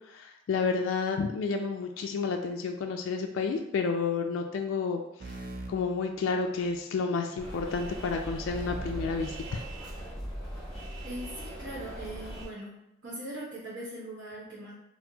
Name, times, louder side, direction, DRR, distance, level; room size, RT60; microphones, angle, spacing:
voice 1, 0.1-5.0 5.7-9.6, left 4 dB, 85° left, 3 dB, 0.3 m, -30 dB
sound 1, 5.2-6.8 8.5-10.3, right 2 dB, 50° right, 0.4 m, -42 dB
sound 2, 7.4-12.5, equal, 5° left, 1.0 m, -40 dB
voice 2, 11.0-14.7, right 1 dB, 80° right, -7 dB, 1.0 m, -41 dB
4.2 x 2.0 x 2.7 m, 0.83 s
head